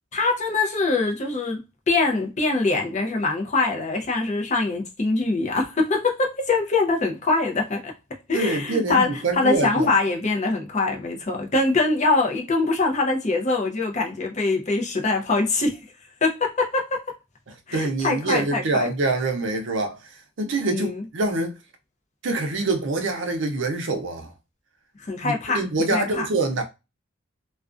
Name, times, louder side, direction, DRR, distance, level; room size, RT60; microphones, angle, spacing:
voice 1, 0.1-1.6 1.9-7.9 8.3-9.1 9.3-15.8 16.2-17.0 17.7-18.9 20.4-21.0 25.0-26.3, left 3 dB, 35° left, 0.6 m, -23 dB
voice 2, 8.3-9.9 17.7-21.6 22.2-24.3 25.2-26.6, right 2 dB, 60° right, 0.6 m, -25 dB
2.3 x 2.2 x 2.4 m
head